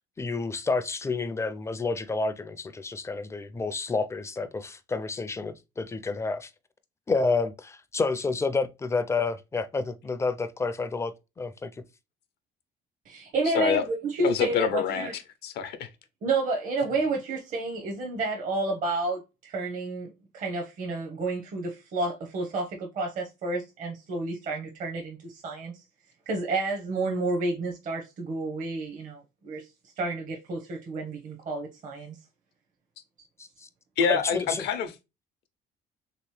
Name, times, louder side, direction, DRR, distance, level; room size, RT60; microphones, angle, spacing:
voice 1, 0.2-6.5 7.1-11.8 33.4-33.7 34.1-34.6, left 3 dB, 15° left, 0.4 m, -29 dB
voice 2, 13.1-15.1 16.2-25.8 26.3-29.7 30.0-32.2, right 3 dB, 50° right, 0.8 m, -30 dB
voice 3, 14.2-15.9 34.0-34.9, left 7 dB, 75° left, 0.6 m, -26 dB
3.2 x 2.9 x 3.0 m
cardioid pair, 110°, 17 cm